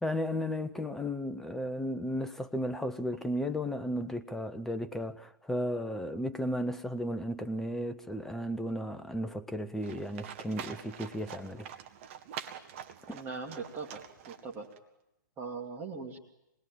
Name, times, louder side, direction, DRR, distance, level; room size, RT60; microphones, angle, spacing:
voice 1, 0.0-11.7 13.1-13.2, equal, 5° left, 0.9 m, -34 dB
Livestock farm animals working animals, 9.8-14.8, right 9 dB, 40° right, 1.8 m, -45 dB
voice 2, 13.1-14.7 15.4-16.2, right 4 dB, 20° right, 2.8 m, -40 dB
26.5 x 20.5 x 9.2 m
figure-of-eight pair, 115°, 11 cm